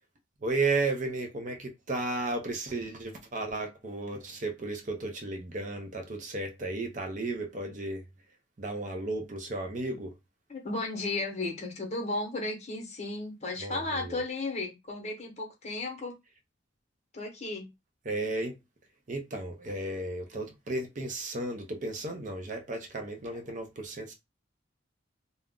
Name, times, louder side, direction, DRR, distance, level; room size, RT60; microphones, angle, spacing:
voice 1, 0.4-8.0 8.6-10.1 13.6-14.2 18.0-18.6 19.1-24.1, right 2 dB, 40° right, 0.5 m, -34 dB
voice 2, 10.5-16.1 17.1-17.7, left 2 dB, 35° left, 0.8 m, -34 dB
2.4 x 2.0 x 3.5 m
head